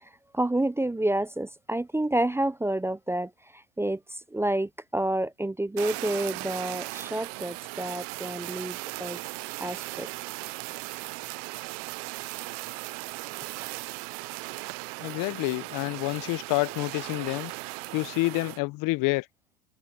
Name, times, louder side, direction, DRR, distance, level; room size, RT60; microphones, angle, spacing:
voice 1, 0.0-9.2 9.6-10.1, right 1 dB, 5° right, 0.5 m, -29 dB
Fire, 5.8-18.6, right 30 dB, 65° right, 0.5 m, -37 dB
voice 2, 15.0-17.5 17.9-19.3, left 23 dB, 50° left, 0.8 m, -28 dB
supercardioid pair, 100°, 42 cm